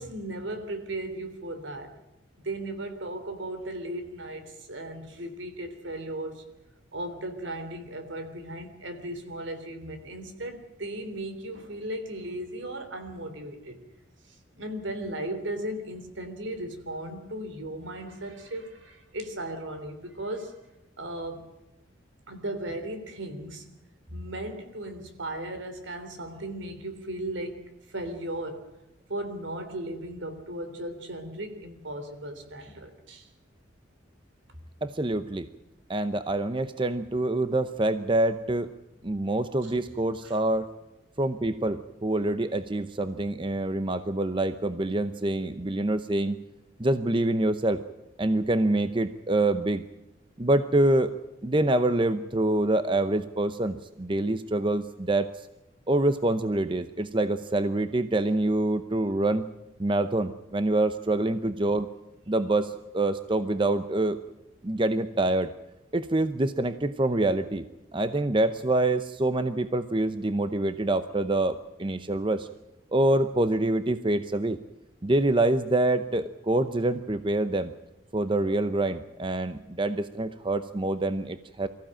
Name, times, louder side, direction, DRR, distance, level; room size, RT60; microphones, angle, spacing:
voice 1, 0.0-1.9 2.4-6.4 6.9-13.8 14.3-20.6 21.0-21.5 22.3-23.7 24.1-27.6 27.9-28.7 29.1-33.3 39.6-39.7 40.2-40.3, right 1 dB, 75° right, 8 dB, 3.4 m, -36 dB
voice 2, 34.8-35.5 35.9-38.7 39.0-40.7 41.2-46.4 46.8-47.8 48.2-49.8 50.4-51.2 51.4-55.3 55.9-59.4 59.8-61.9 62.3-64.2 64.6-65.5 65.9-67.7 67.9-72.5 72.9-74.6 75.0-77.7 78.1-81.7, right 2 dB, 25° right, 11 dB, 0.7 m, -26 dB
24.0 x 15.0 x 8.9 m, 0.94 s
head